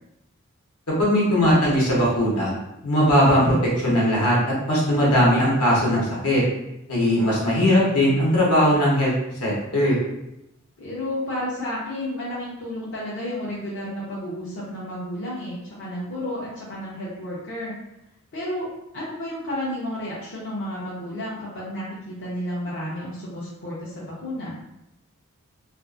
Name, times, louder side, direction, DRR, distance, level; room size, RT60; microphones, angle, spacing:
voice 1, 1.0-2.5 2.8-6.4 6.9-9.1 9.4-10.0, equal, 80° left, -5 dB, 1.0 m, -19 dB
voice 2, 10.8-17.7 18.3-24.6, left 1 dB, 55° left, -8 dB, 0.6 m, -32 dB
2.5 x 2.4 x 2.4 m, 0.88 s
head